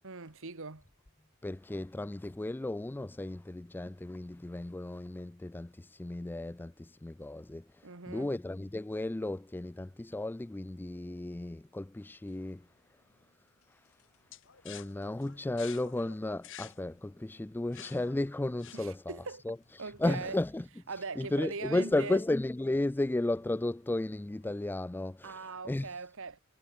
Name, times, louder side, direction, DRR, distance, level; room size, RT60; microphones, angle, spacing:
voice 1, 0.0-0.9 7.8-8.3 18.7-19.4 19.8-20.4 20.9-22.2 25.2-26.4, right 4 dB, 65° right, 1.7 m, -41 dB
voice 2, 1.4-12.7 13.7-14.0 14.6-19.2 19.4-26.0, left 2 dB, 10° left, 0.3 m, -34 dB
sound 1, 12.2-25.0, left 2 dB, 80° left, 7.5 m, -73 dB
sound 2, 14.3-19.2, left 10 dB, 60° left, 2.9 m, -50 dB
head